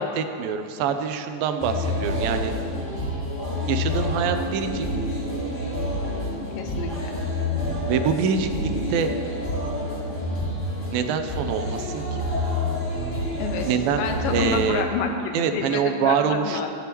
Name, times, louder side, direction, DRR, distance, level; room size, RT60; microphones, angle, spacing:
voice 1, 0.0-2.5 3.7-4.9 7.9-8.5 8.9-9.1 10.9-12.0 13.6-14.9 15.3-16.7, right 7 dB, 80° right, 7 dB, 2.4 m, -25 dB
sound 1, 1.6-14.8, left 1 dB, 15° left, 2.3 m, -28 dB
voice 2, 6.6-7.2 13.4-13.7 14.0-16.7, left 5 dB, 70° left, 3 dB, 2.5 m, -28 dB
18.5 x 10.5 x 3.0 m, 2.4 s
omnidirectional pair, 4.3 m